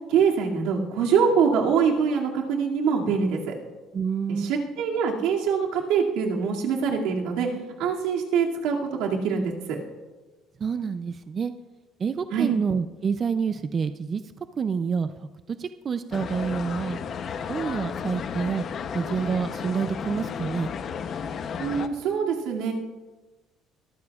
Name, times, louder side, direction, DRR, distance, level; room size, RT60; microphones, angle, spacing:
voice 1, 0.1-3.5 4.3-7.5 7.8-9.8 12.3-12.5 21.6-22.7, right 6 dB, 85° right, -1 dB, 2.3 m, -24 dB
voice 2, 3.9-4.5 10.6-11.5 12.0-17.0 17.5-18.6 18.9-20.7, right 6 dB, 30° right, 10 dB, 0.4 m, -28 dB
sound 1, 16.1-21.9, left 6 dB, 40° left, 0.7 m, -33 dB
23.0 x 14.0 x 2.4 m, 1.2 s
cardioid pair, 165°, 0 cm